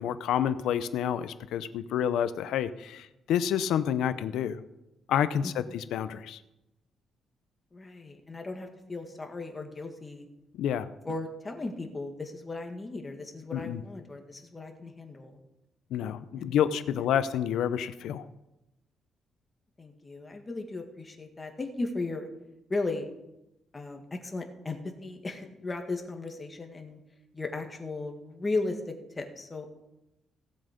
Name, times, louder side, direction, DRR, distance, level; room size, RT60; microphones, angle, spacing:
voice 1, 0.0-4.6 5.1-6.4 10.6-10.9 13.5-13.8 15.9-18.3, left 9 dB, 85° left, 13 dB, 0.7 m, -29 dB
voice 2, 7.7-10.3 11.0-15.4 16.4-16.6 19.8-22.3 22.7-23.1 23.7-27.0 27.3-29.7, left 3 dB, 20° left, 4 dB, 1.8 m, -36 dB
16.5 x 7.4 x 5.2 m, 0.92 s
cardioid pair, 115°, 0 cm